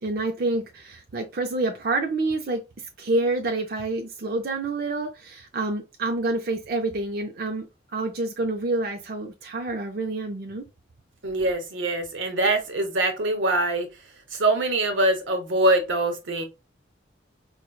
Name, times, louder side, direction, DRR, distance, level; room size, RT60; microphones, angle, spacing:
voice 1, 0.0-10.7, right 2 dB, 50° right, 0.4 m, -28 dB
voice 2, 11.2-13.9 14.3-16.4, right 2 dB, 85° right, 0.9 m, -23 dB
4.3 x 2.2 x 2.2 m
head